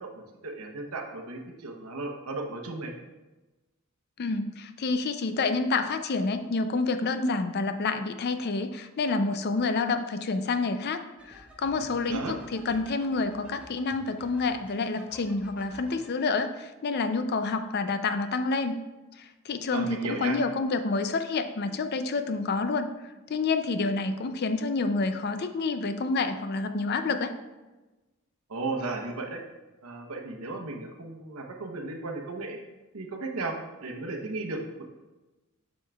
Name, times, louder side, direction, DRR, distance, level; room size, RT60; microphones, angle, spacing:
voice 1, 0.0-2.9 12.1-12.4 19.7-20.4 28.5-29.4 29.8-32.6 32.9-34.8, right 3 dB, 85° right, 3 dB, 0.9 m, -35 dB
voice 2, 4.2-11.0 11.3-18.8 19.2-22.9 23.3-27.3, left 3 dB, 45° left, 9 dB, 0.4 m, -28 dB
sound 1, 11.2-16.3, equal, 5° right, 0.7 m, -51 dB
7.4 x 6.3 x 2.3 m, 1.1 s
head